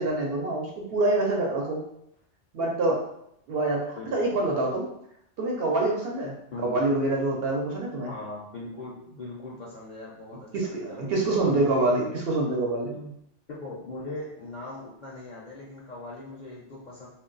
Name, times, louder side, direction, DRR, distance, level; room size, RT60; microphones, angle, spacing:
voice 1, 0.0-1.8 2.5-3.0 3.5-4.8 5.4-6.4 6.6-8.1 10.5-13.1, right 2 dB, 60° right, -1 dB, 0.8 m, -26 dB
voice 2, 4.0-4.4 6.5-6.8 8.1-11.6 13.5-17.1, left 2 dB, 50° left, -5 dB, 0.6 m, -40 dB
2.3 x 2.2 x 3.7 m, 0.75 s
omnidirectional pair, 1.2 m